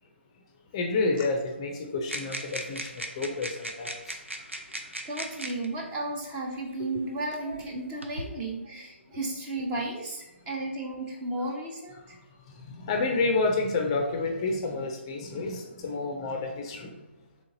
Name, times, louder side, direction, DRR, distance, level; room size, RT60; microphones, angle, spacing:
voice 1, 0.7-4.2 12.7-16.9, left 3 dB, 25° left, 3 dB, 0.5 m, -29 dB
sound 1, 2.1-5.7 6.7-6.8 7.5-8.3, right 1 dB, 90° right, 0.6 m, -38 dB
voice 2, 4.7-12.2, right 2 dB, 15° right, 0 dB, 0.6 m, -34 dB
3.8 x 3.5 x 3.8 m, 1.1 s
figure-of-eight pair, 140°, 7 cm